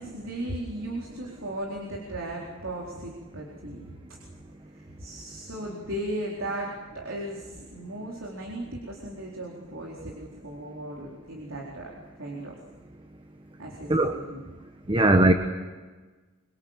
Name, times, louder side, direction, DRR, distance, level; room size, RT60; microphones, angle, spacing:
voice 1, 0.0-3.8 4.7-11.9 12.2-12.6 13.6-14.4, right 1 dB, 70° right, -2 dB, 4.2 m, -36 dB
voice 2, 14.9-15.3, right 1 dB, 25° right, 6 dB, 1.1 m, -19 dB
24.5 x 24.0 x 7.4 m, 1.3 s
head